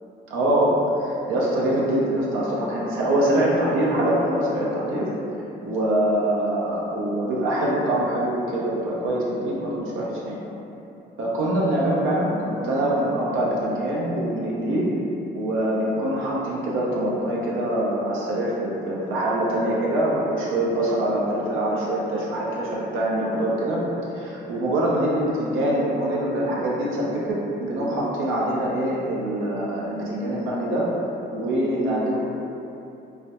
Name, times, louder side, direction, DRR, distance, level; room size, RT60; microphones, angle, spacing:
voice 1, 0.3-5.1 5.6-10.4 11.2-14.9 15.3-23.8 24.1-30.9 31.3-32.2, right 1 dB, 85° right, -5 dB, 0.6 m, -24 dB
2.2 x 2.0 x 2.8 m, 2.8 s
cardioid pair, 90°, 20 cm